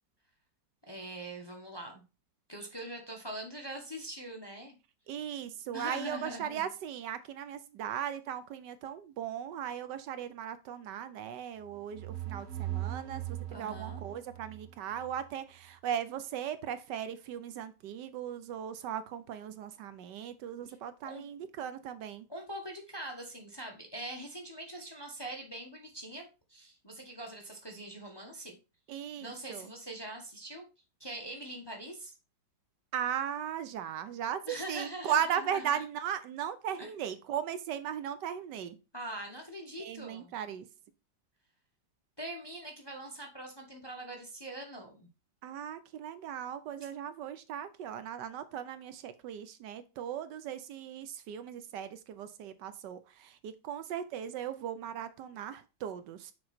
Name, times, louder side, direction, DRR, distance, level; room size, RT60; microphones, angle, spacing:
voice 1, 0.9-2.0 2.5-4.8 5.7-6.7 13.5-14.0 21.0-21.2 22.3-28.6 29.2-30.6 31.0-32.1 34.5-35.2 35.5-35.8 36.8-36.9 38.9-40.3 42.2-45.1, right 1 dB, 20° left, 0.9 m, -43 dB
voice 2, 5.1-22.3 28.9-29.7 32.9-38.8 39.8-40.7 45.4-56.3, right 9 dB, 75° right, 1.2 m, -37 dB
sound 1, 11.6-15.3, right 13 dB, 50° right, 1.7 m, -40 dB
6.5 x 4.3 x 4.2 m
omnidirectional pair, 2.0 m